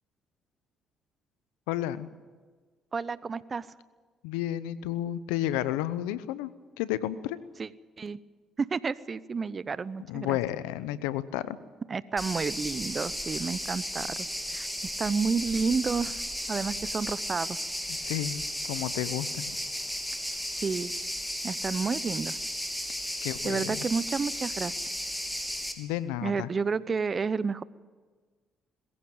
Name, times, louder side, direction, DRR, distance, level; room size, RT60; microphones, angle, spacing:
voice 1, 1.7-2.1 4.2-6.5 6.8-7.4 10.1-11.6 17.9-18.4 18.7-19.5 23.2-23.8 25.8-26.5, left 13 dB, 85° left, 16 dB, 0.8 m, -31 dB
voice 2, 2.9-3.7 7.6-7.7 8.0-8.2 8.6-10.4 11.9-14.7 15.0-16.2 16.5-17.6 20.5-20.9 21.4-22.4 23.4-24.9 26.2-27.6, right 5 dB, 40° right, 18 dB, 0.9 m, -30 dB
sound 1, 12.2-25.7, equal, 5° left, 3.6 m, -34 dB
22.0 x 15.0 x 8.9 m, 1.5 s
hypercardioid pair, 55°, 0 cm